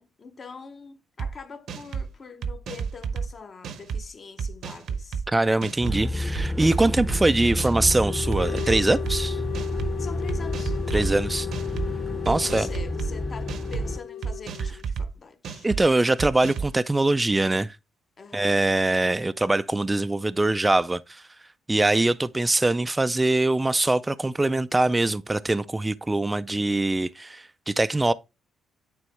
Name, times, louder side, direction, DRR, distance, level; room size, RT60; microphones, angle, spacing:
voice 1, 0.0-5.2 10.0-11.1 12.4-15.7 18.2-18.6, left 4 dB, 40° left, 1.0 m, -43 dB
sound 1, 1.2-1.3 1.7-2.1 2.4-3.3 3.6-4.0 4.4-5.2 5.6-6.0 6.3-7.2 7.6-7.9 8.3-9.2 9.5-9.9 10.3-11.1 11.5-11.9 12.2-13.1 13.5-13.8 14.2-15.1 15.4-15.8 16.2-16.7, right 6 dB, 70° right, 0.8 m, -31 dB
voice 2, 5.3-9.4 10.9-11.5 12.2-12.7 15.6-17.8 18.3-21.2 21.7-28.1, right 2 dB, 15° right, 0.3 m, -23 dB
sound 2, 5.8-14.0, left 1 dB, 10° left, 0.8 m, -30 dB
sound 3, 8.1-14.8, left 12 dB, 90° left, 0.3 m, -35 dB
9.1 x 3.5 x 3.2 m
cardioid pair, 90°, 0 cm